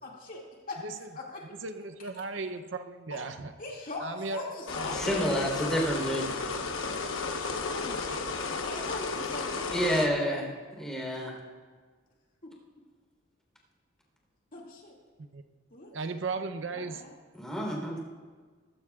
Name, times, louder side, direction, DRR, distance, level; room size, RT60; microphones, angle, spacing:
voice 1, 0.0-0.8 1.1-1.6 2.0-2.2 3.1-3.3 3.6-5.1 7.7-10.1 14.5-15.0 15.7-15.9 16.7-17.1, left 2 dB, 45° left, -2 dB, 2.3 m, -41 dB
voice 2, 1.6-3.5 4.0-4.4 4.8-4.9 15.3-15.4 15.9-17.0, right 3 dB, 65° right, 8 dB, 0.7 m, -36 dB
sound 1, 4.7-10.1, left 4 dB, 85° left, 1.1 m, -33 dB
voice 3, 4.9-6.3 9.7-10.5 10.8-11.4 17.3-18.0, equal, 5° left, -1 dB, 3.6 m, -29 dB
20.0 x 15.5 x 2.4 m, 1.5 s
head